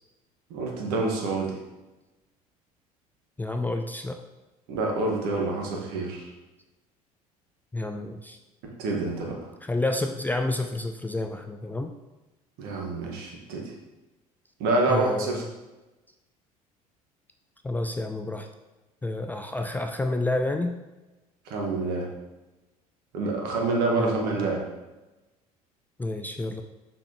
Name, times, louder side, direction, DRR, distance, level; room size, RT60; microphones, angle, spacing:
voice 1, 0.5-1.5 4.7-6.3 8.8-9.4 12.6-13.6 14.6-15.4 21.5-22.1 23.1-24.6, right 3 dB, 55° right, 0 dB, 1.6 m, -27 dB
voice 2, 3.4-4.2 7.7-8.4 9.6-11.9 14.9-15.5 17.6-18.5 19.0-20.8 24.0-24.5 26.0-26.6, left 2 dB, 10° left, 5 dB, 0.4 m, -29 dB
6.2 x 6.0 x 3.0 m, 1.1 s
figure-of-eight pair, 60°, 19 cm